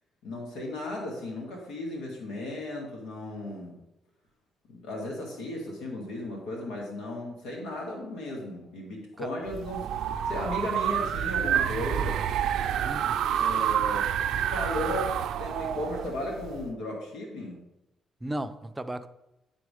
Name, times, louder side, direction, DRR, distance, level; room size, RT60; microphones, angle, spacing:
voice 1, 0.2-3.8 4.7-9.9 10.3-12.2 13.4-14.1 14.4-17.6, left 1 dB, 90° left, -1 dB, 1.9 m, -35 dB
sound 1, 9.5-16.7, right 9 dB, 80° right, 0.4 m, -28 dB
voice 2, 12.8-13.2 18.2-19.1, right 1 dB, 15° right, 10 dB, 0.5 m, -35 dB
10.5 x 3.8 x 4.9 m, 0.91 s
cardioid pair, 90°, 0 cm